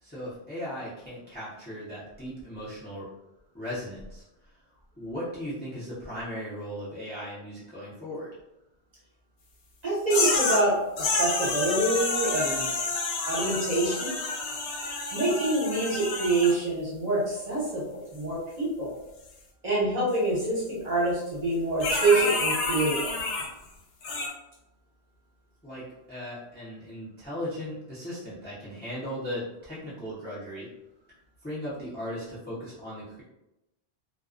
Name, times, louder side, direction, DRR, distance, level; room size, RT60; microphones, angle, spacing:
voice 1, 0.0-3.1 3.5-4.6 5.0-8.3 25.6-30.7 31.4-33.2, equal, 10° left, -9 dB, 0.6 m, -37 dB
voice 2, 9.8-12.7 13.3-14.1 15.1-18.9 19.6-23.1, right 2 dB, 40° right, -8 dB, 1.0 m, -26 dB
sound 1, 10.1-10.6 11.0-16.5 21.8-23.5 24.0-24.3, left 3 dB, 80° left, 0.9 m, -29 dB
2.3 x 2.2 x 2.4 m, 0.91 s
omnidirectional pair, 1.1 m